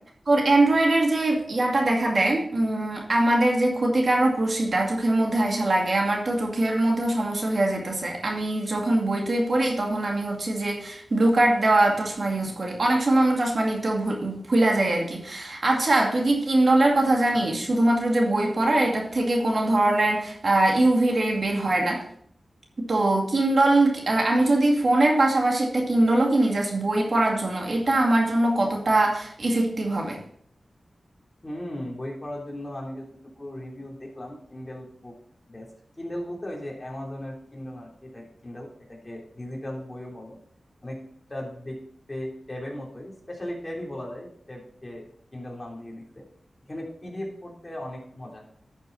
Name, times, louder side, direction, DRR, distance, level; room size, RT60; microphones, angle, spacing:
voice 1, 0.3-22.0 22.8-30.2, right 2 dB, 60° right, 1 dB, 2.3 m, -22 dB
voice 2, 31.4-35.1 35.5-35.7 36.0-40.4 40.8-41.0 41.3-41.8 42.1-46.2 46.7-48.4, left 1 dB, 25° left, -2 dB, 3.4 m, -37 dB
12.0 x 6.7 x 4.1 m, 0.63 s
cardioid pair, 60°, 0 cm